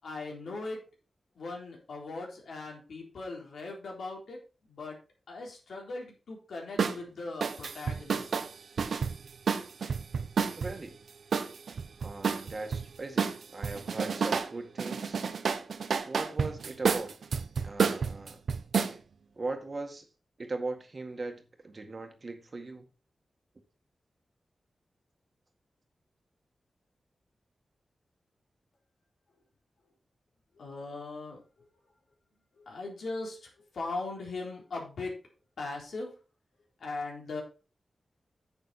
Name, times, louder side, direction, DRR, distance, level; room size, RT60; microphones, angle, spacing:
voice 1, 0.0-0.8 1.4-5.0 5.3-8.3 30.6-31.7 32.6-35.2 35.6-36.2 36.8-37.4, left 3 dB, 80° left, 3.8 m, -39 dB
sound 1, 6.8-7.0 7.4-10.7 11.3-12.8 13.2-14.5 14.8-18.9, right 6 dB, 80° right, 0.9 m, -30 dB
voice 2, 10.6-11.0 12.0-15.2 16.1-17.1 17.6-18.4 18.8-19.0 19.4-20.1 20.4-22.9, right 3 dB, 40° right, 1.9 m, -39 dB
9.7 x 6.7 x 4.3 m
wide cardioid pair, 105°, 0 cm